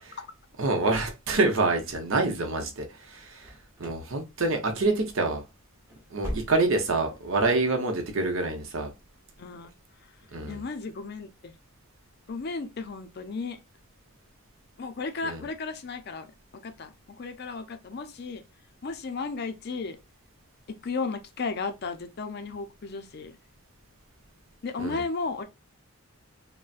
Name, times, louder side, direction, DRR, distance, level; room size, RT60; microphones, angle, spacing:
voice 1, 0.6-5.4 6.1-8.9 10.3-10.6 15.2-15.4 24.8-25.0, right 3 dB, 65° right, 0.8 m, -27 dB
sound 1, 3.4-4.1 4.4-4.8 5.1-5.3 5.7-7.0 7.3-7.4 7.9-8.0, equal, 10° right, 0.9 m, -39 dB
voice 2, 9.4-9.7 10.5-11.5 12.3-13.6 14.8-18.4 18.8-20.0 20.8-23.4 24.6-25.4, left 4 dB, 45° left, 0.4 m, -34 dB
3.9 x 2.1 x 2.4 m
head